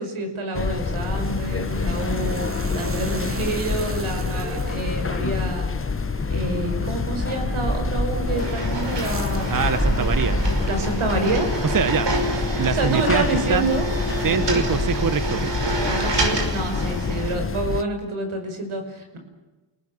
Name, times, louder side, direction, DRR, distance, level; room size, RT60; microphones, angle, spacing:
voice 1, 0.0-5.7 6.3-9.6 10.7-11.8 12.1-12.2 12.5-13.9 14.5-14.7 15.8-19.2, right 2 dB, 85° right, 5 dB, 5.6 m, -28 dB
sound 1, 0.5-17.8, left 5 dB, 25° left, 0.8 m, -27 dB
sound 2, 0.8-11.2, right 2 dB, 25° right, 2.5 m, -32 dB
sound 3, 8.4-17.3, right 3 dB, 60° right, 5.6 m, -29 dB
voice 2, 9.5-10.4 11.7-12.1 12.6-13.7 14.2-15.6, right 6 dB, 40° right, 13 dB, 1.1 m, -24 dB
29.5 x 18.5 x 7.3 m, 1.1 s
cardioid pair, 80°, 48 cm